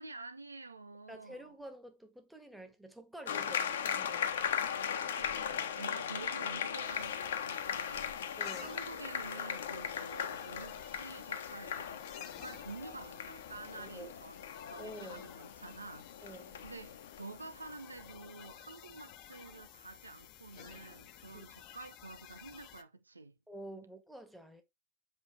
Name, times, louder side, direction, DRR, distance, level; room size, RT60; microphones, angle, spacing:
voice 1, 0.0-1.5 5.2-5.5 5.7-14.4 14.7-16.1 16.6-23.3, right 3 dB, 80° right, 0.9 m, -49 dB
voice 2, 1.1-4.3 8.4-8.7 13.8-14.1 14.8-15.3 16.2-16.6 21.3-21.5 23.5-24.6, right 1 dB, 5° right, 1.7 m, -49 dB
sound 1, 3.3-18.2, left 8 dB, 60° left, 1.2 m, -38 dB
sound 2, 6.8-22.8, left 11 dB, 40° left, 1.1 m, -54 dB
8.0 x 4.9 x 3.6 m
figure-of-eight pair, 90°, 0 cm